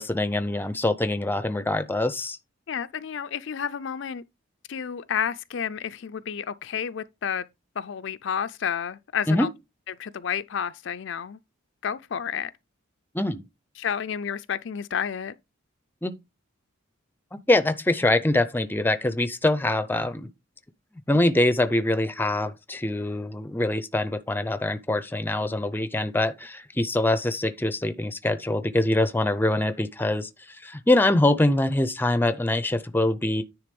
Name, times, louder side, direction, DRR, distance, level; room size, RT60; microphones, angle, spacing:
voice 1, 0.0-2.4 9.3-9.5 13.1-13.4 16.0-16.1 17.5-20.3 21.1-30.3 30.6-33.4, left 1 dB, 10° left, 0.5 m, -24 dB
voice 2, 2.7-4.2 4.7-7.4 7.8-9.5 10.0-11.4 11.8-12.5 13.8-15.3, left 7 dB, 60° left, 0.4 m, -30 dB
9.8 x 3.5 x 5.2 m
head